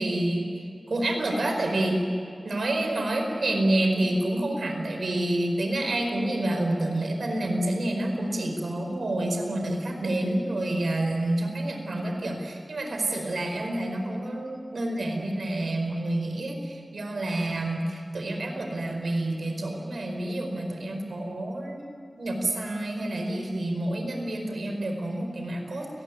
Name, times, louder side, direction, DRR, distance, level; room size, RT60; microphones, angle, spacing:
voice 1, 0.0-2.0 2.4-21.9 22.1-25.9, right 1 dB, 85° right, 3 dB, 4.7 m, -28 dB
30.0 x 19.5 x 9.5 m, 2.4 s
wide cardioid pair, 60°, 0 cm